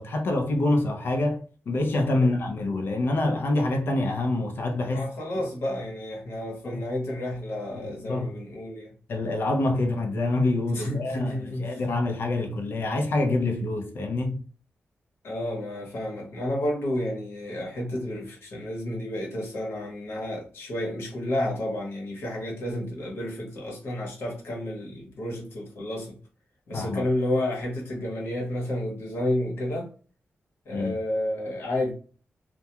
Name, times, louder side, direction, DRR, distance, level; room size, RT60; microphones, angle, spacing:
voice 1, 0.0-5.1 6.6-6.8 7.8-8.4 9.1-14.4 26.7-27.0 30.7-30.9, left 2 dB, 60° left, 0.5 m, -26 dB
voice 2, 4.9-8.9 10.7-11.8 15.2-26.2 26.7-29.9 30.6-31.9, left 1 dB, 75° left, 1.0 m, -31 dB
2.3 x 2.2 x 2.8 m
wide cardioid pair, 175°, 4 cm